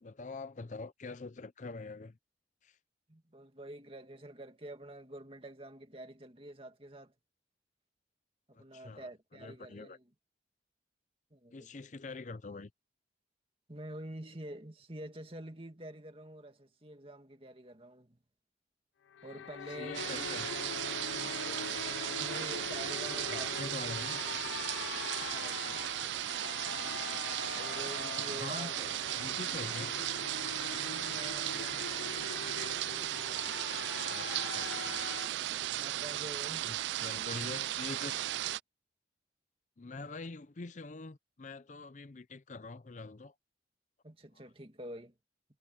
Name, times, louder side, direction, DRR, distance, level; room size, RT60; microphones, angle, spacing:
voice 1, 0.0-2.2 2.6-2.8 8.5-10.0 11.5-12.7 19.7-20.5 23.3-24.2 28.3-29.9 34.1-35.1 36.6-38.2 39.8-43.3 44.3-44.4, left 3 dB, 40° left, 0.6 m, -45 dB
voice 2, 3.1-7.1 8.5-10.0 11.3-11.7 13.7-18.2 19.2-20.3 21.1-23.7 25.2-25.9 27.5-28.7 30.8-32.4 35.8-36.7 44.0-45.1, right 1 dB, 30° right, 2.3 m, -47 dB
sound 1, 19.1-35.3, left 8 dB, 90° left, 0.4 m, -43 dB
sound 2, 19.9-38.6, right 13 dB, 75° right, 0.3 m, -36 dB
head